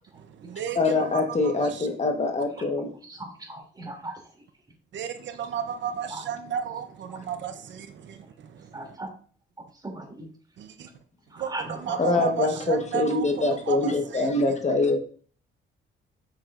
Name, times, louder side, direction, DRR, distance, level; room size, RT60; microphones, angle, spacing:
voice 1, 0.1-1.9 4.9-8.9 10.6-10.9 11.4-13.2 13.7-14.3, right 7 dB, 70° right, 8 dB, 0.8 m, -34 dB
voice 2, 0.7-2.9 12.0-15.0, left 2 dB, 35° left, 4 dB, 1.3 m, -24 dB
voice 3, 3.0-4.2 6.1-6.2 7.1-7.2 8.7-9.1 9.8-10.3 11.3-12.2, right 2 dB, 20° right, 2 dB, 2.8 m, -37 dB
7.6 x 7.6 x 2.5 m, 0.43 s
cardioid pair, 90°, 20 cm